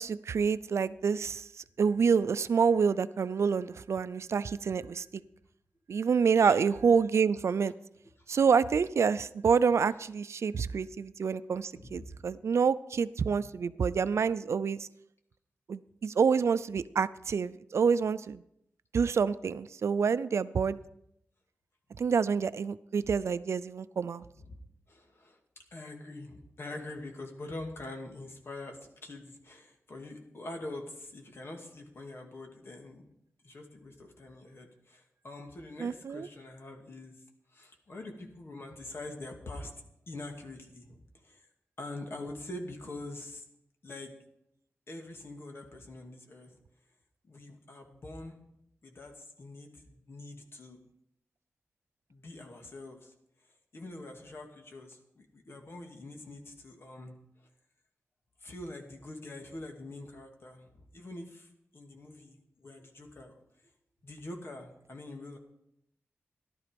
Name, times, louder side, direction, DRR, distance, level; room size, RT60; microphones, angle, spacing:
voice 1, 0.0-1.5 1.8-5.0 5.9-7.7 8.3-14.9 15.7-18.4 18.9-20.8 22.0-24.2 35.8-36.3, right 6 dB, 75° right, 15 dB, 0.5 m, -27 dB
voice 2, 11.7-12.1 24.4-24.6 24.9-25.4 25.7-33.0 33.4-37.2 37.5-39.7 40.1-41.5 41.8-43.4 43.8-44.1 44.9-46.6 47.2-48.4 48.8-50.8 52.1-53.1 53.4-57.5 58.4-63.7 64.0-65.4, left 2 dB, 55° left, 3 dB, 2.4 m, -45 dB
14.5 x 12.0 x 5.2 m, 0.77 s
wide cardioid pair, 95°, 5 cm